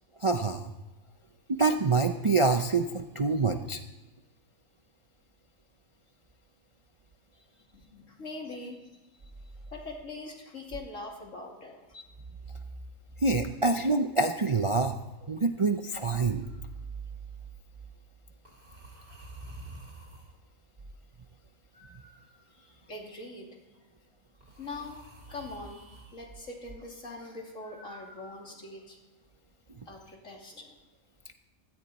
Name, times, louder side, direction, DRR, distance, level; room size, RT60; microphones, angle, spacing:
voice 1, 0.2-0.7 1.5-3.8 13.2-15.0 15.3-16.4, right 3 dB, 35° right, 6 dB, 0.5 m, -26 dB
voice 2, 7.7-8.8 9.7-12.0 22.5-23.5 24.6-29.0 29.9-30.7, left 2 dB, 70° left, 0 dB, 3.0 m, -43 dB
sound 1, 16.4-16.7 18.4-20.4 21.7-22.8 24.4-26.2 27.6-28.8, right 2 dB, 50° right, 3.6 m, -50 dB
16.5 x 14.0 x 4.2 m, 1.1 s
omnidirectional pair, 1.4 m